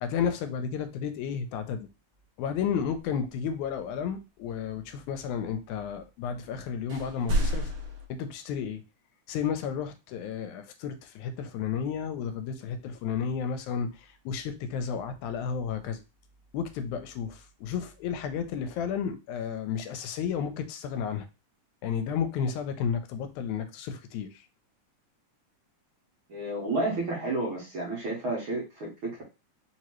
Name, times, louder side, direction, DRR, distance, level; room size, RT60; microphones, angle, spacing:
voice 1, 0.0-1.9 2.4-7.7 8.1-8.8 9.3-16.0 16.5-21.3 21.8-24.5, left 7 dB, 85° left, 9 dB, 2.0 m, -32 dB
sound 1, 6.9-8.1, equal, 75° right, 1.2 m, -28 dB
voice 2, 26.3-29.2, right 2 dB, 55° right, -3 dB, 1.7 m, -31 dB
4.6 x 2.8 x 3.0 m, 0.28 s
omnidirectional pair, 3.4 m